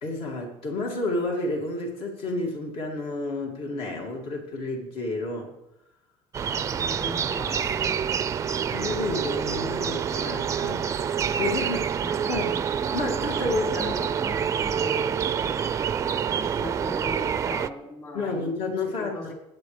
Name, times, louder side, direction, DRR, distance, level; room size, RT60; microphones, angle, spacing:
voice 1, 0.0-5.5 8.7-12.6 12.9-13.9 18.1-19.3, left 2 dB, 55° left, 1 dB, 2.7 m, -31 dB
sound 1, 6.3-17.7, right 7 dB, 30° right, 0.4 m, -27 dB
voice 2, 6.5-8.0 10.2-10.5 12.0-12.7 13.5-15.8 16.1-18.5 18.8-19.3, left 1 dB, 30° left, -1 dB, 4.9 m, -40 dB
20.5 x 8.8 x 3.4 m, 0.89 s
cardioid pair, 135°, 11 cm